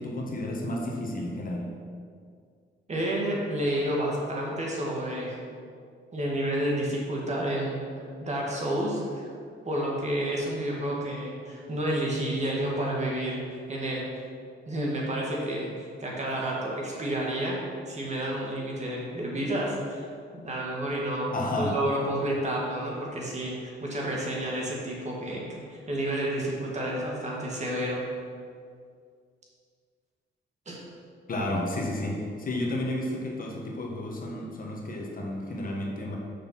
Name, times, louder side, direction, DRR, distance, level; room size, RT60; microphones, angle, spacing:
voice 1, 0.0-1.7 21.3-21.8 31.3-36.2, left 1 dB, 45° left, -1 dB, 1.4 m, -31 dB
voice 2, 2.9-5.4 6.1-9.3 9.7-13.4 13.7-14.0 14.7-17.6 17.9-28.0 30.7-30.8, right 1 dB, 35° right, -3 dB, 2.0 m, -30 dB
6.7 x 5.7 x 6.0 m, 2.2 s
cardioid pair, 115°, 20 cm